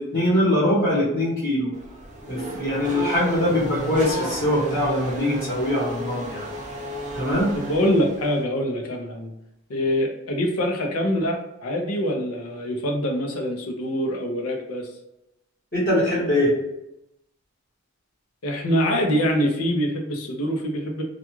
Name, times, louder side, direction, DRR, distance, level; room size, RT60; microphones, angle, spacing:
voice 1, 0.0-1.7 2.3-6.5 7.1-7.5 15.7-16.5, left 1 dB, 35° left, -9 dB, 1.1 m, -22 dB
Race car auto racing / Accelerating revving vroom, 1.7-8.4, equal, 30° right, 0.6 m, -32 dB
voice 2, 7.3-9.3 9.7-14.9 18.4-21.0, equal, 80° left, 2 dB, 0.6 m, -24 dB
2.4 x 2.3 x 3.0 m, 0.87 s
head